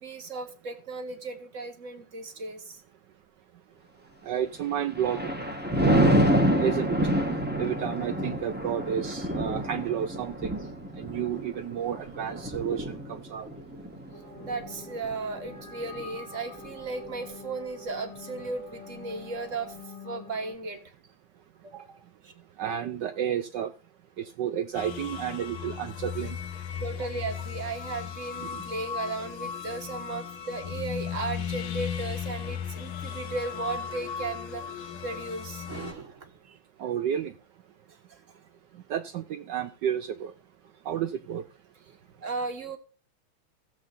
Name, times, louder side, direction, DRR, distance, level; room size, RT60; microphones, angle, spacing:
voice 1, 0.0-2.8 14.4-20.8 21.6-22.0 22.2-22.4 26.8-36.6 42.2-42.8, right 3 dB, 45° right, 1.2 m, -36 dB
voice 2, 4.2-5.4 5.8-7.0 7.6-10.5 10.9-13.5 22.6-23.7 24.2-26.4 27.0-27.1 28.5-28.6 36.8-37.3 38.9-40.3 40.9-41.4, right 9 dB, 70° right, 1.0 m, -31 dB
Thunder, 4.6-16.1 16.6-16.9, right 1 dB, 10° right, 0.6 m, -28 dB
sound 1, 14.1-20.6, left 3 dB, 10° left, 1.2 m, -46 dB
sound 2, 24.7-35.9, left 8 dB, 75° left, 1.7 m, -36 dB
17.0 x 7.5 x 2.5 m
omnidirectional pair, 2.4 m